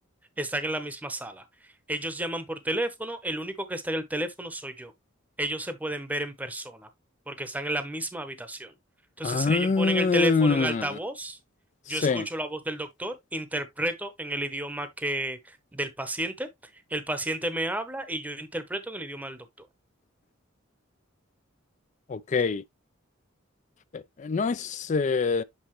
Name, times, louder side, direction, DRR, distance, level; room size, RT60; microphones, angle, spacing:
voice 1, 0.4-1.4 1.9-4.9 5.4-6.9 7.3-8.7 9.2-11.4 11.9-16.5 16.9-19.7, right 1 dB, 10° right, 0.8 m, -32 dB
voice 2, 9.2-11.0 11.9-12.3 22.1-22.6 23.9-25.4, left 4 dB, 35° left, 0.4 m, -25 dB
7.8 x 4.0 x 3.1 m
head